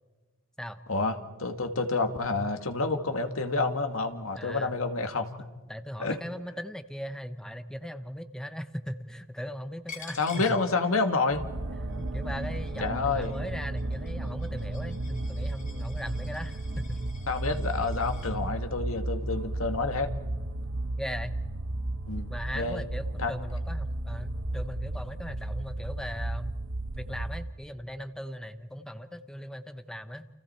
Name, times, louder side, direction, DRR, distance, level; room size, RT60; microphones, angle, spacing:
voice 1, 0.9-5.3 6.0-6.2 10.2-11.4 12.8-13.3 17.3-20.1 22.1-22.8 23.2-23.3, left 3 dB, 75° left, 7 dB, 2.0 m, -29 dB
voice 2, 4.3-4.8 5.7-10.2 12.0-17.0 21.0-21.4 22.3-26.5 27.0-30.3, equal, 5° left, 10 dB, 0.8 m, -38 dB
Coin (dropping), 9.9-11.4 11.7-18.3, left 5 dB, 40° left, 3.9 m, -49 dB
sound 1, 11.3-27.6, right 2 dB, 70° right, 1.1 m, -34 dB
29.5 x 29.5 x 4.4 m, 1.3 s
head